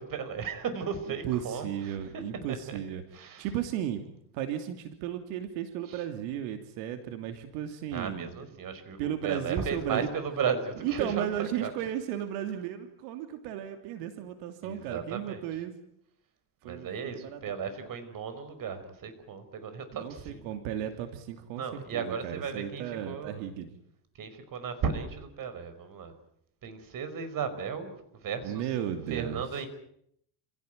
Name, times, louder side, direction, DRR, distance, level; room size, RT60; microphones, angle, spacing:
voice 1, 0.0-2.8 3.1-3.5 5.9-6.0 7.9-11.7 14.6-15.5 16.6-20.4 21.6-23.5 24.2-26.1 26.6-28.7 29.1-29.7, right 6 dB, 45° right, 10 dB, 5.2 m, -35 dB
voice 2, 1.2-3.0 3.4-4.0 4.3-8.3 9.0-10.1 10.8-15.7 16.6-17.4 19.9-23.7 28.4-29.4, right 10 dB, 85° right, 7 dB, 3.0 m, -34 dB
28.5 x 17.0 x 9.3 m, 0.73 s
cardioid pair, 120°, 48 cm